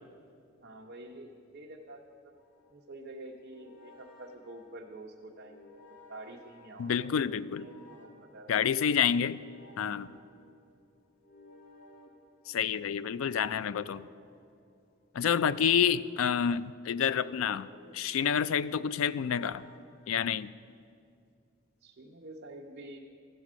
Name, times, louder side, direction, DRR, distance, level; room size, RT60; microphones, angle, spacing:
voice 1, 0.6-2.3 2.7-7.1 7.6-8.5 21.8-23.0, right 1 dB, 55° right, -1 dB, 0.7 m, -48 dB
sound 1, 2.4-20.7, left 2 dB, 40° left, 1.4 m, -57 dB
voice 2, 6.8-7.7 8.5-9.4 9.8-10.1 12.5-14.1 15.1-19.7 20.1-20.5, left 8 dB, 80° left, 16 dB, 0.3 m, -28 dB
13.5 x 7.4 x 6.1 m, 2.3 s
head